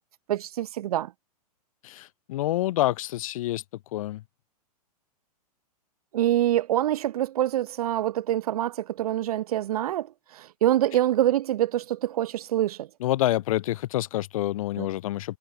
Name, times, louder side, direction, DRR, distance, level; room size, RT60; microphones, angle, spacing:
voice 1, 0.3-1.1 6.1-12.9 14.8-14.9, right 13 dB, 65° right, 0.5 m, -25 dB
voice 2, 1.8-3.6 3.9-4.2 13.0-15.4, left 15 dB, 60° left, 0.4 m, -27 dB
hypercardioid pair, 115°, 20 cm